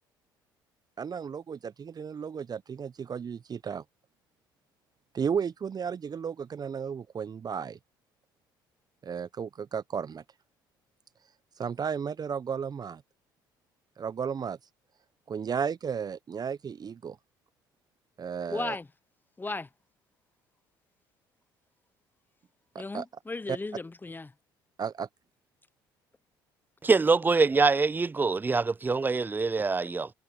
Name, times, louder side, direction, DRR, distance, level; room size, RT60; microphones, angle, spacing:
voice 1, 1.0-3.8 5.1-7.8 9.0-10.2 11.6-13.0 14.0-14.6 15.3-17.2 18.2-18.8 22.7-23.0 23.5-23.6 24.8-25.1, right 7 dB, 35° right, 1.0 m, -34 dB
voice 2, 18.5-18.9 19.4-19.7 22.8-24.3, left 3 dB, 15° left, 1.0 m, -35 dB
voice 3, 26.8-30.1, right 4 dB, 15° right, 0.4 m, -24 dB
hypercardioid pair, 55°, 11 cm